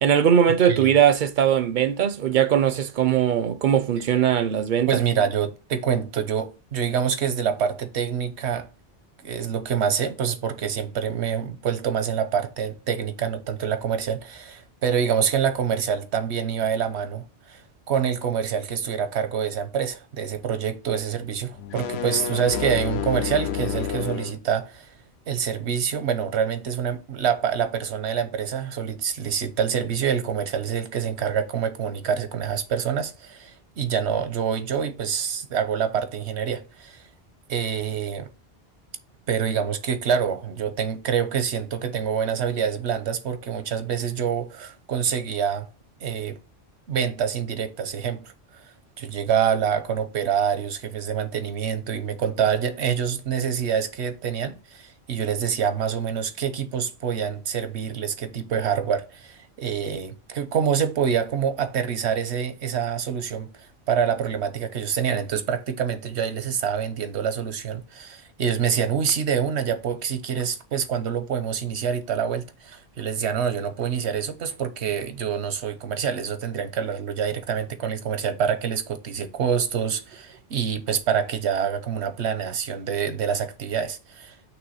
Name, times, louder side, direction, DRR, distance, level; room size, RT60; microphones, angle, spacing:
voice 1, 0.0-5.0, right 9 dB, 60° right, 0.6 m, -20 dB
voice 2, 4.9-8.7 9.2-17.6 17.9-24.9 25.3-37.0 37.5-38.3 39.3-45.7 46.0-46.4 46.9-48.6 49.0-63.5 63.9-84.4, right 7 dB, 90° right, 1.1 m, -26 dB
sound 1, 21.6-24.4, left 8 dB, 75° left, 0.9 m, -29 dB
5.9 x 3.3 x 5.5 m
omnidirectional pair, 1.1 m